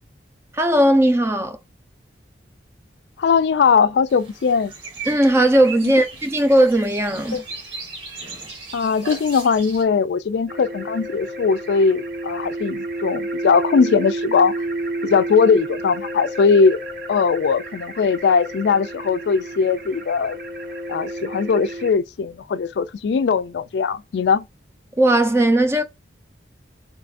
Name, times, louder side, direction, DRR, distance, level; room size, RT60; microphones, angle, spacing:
voice 1, 0.5-1.6 5.1-7.4 25.0-25.8, right 1 dB, 15° right, 0.4 m, -17 dB
voice 2, 3.2-4.7 5.8-5.9 7.3-7.4 8.7-14.5 15.0-16.8 17.1-20.4 20.9-24.5, left 5 dB, 65° left, 0.3 m, -19 dB
sound 1, 4.1-9.8, right 3 dB, 85° right, 1.6 m, -37 dB
sound 2, 10.5-21.9, right 1 dB, 55° right, 0.7 m, -31 dB
3.1 x 2.5 x 3.4 m
head